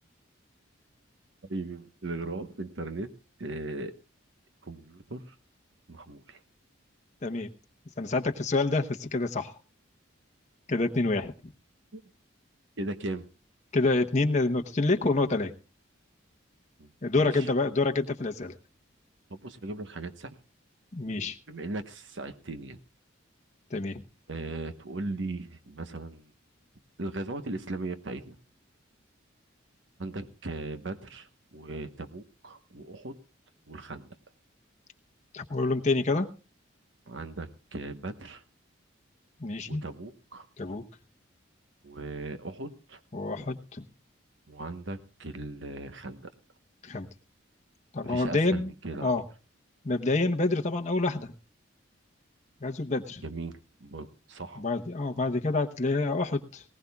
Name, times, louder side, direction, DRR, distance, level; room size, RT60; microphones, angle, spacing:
voice 1, 1.5-3.1 3.4-3.9 4.6-5.2 5.9-6.4 11.9-12.0 12.8-13.3 16.8-16.9 17.2-17.5 19.3-20.4 21.5-22.8 24.3-26.3 27.0-28.4 30.0-33.2 33.7-34.1 37.1-38.4 39.7-40.5 41.8-43.0 44.5-46.3 48.0-49.1 53.2-54.6, right 2 dB, 65° right, 10 dB, 1.1 m, -38 dB
voice 2, 8.0-9.5 10.7-11.5 13.7-15.5 17.0-18.5 20.9-21.4 23.7-24.0 35.3-36.3 39.4-39.8 40.6-40.8 43.1-43.8 46.8-47.1 47.9-48.7 49.0-49.2 49.8-51.3 52.6-53.2 54.6-56.6, left 3 dB, 35° left, 5 dB, 0.9 m, -27 dB
19.5 x 18.0 x 2.3 m, 0.33 s
head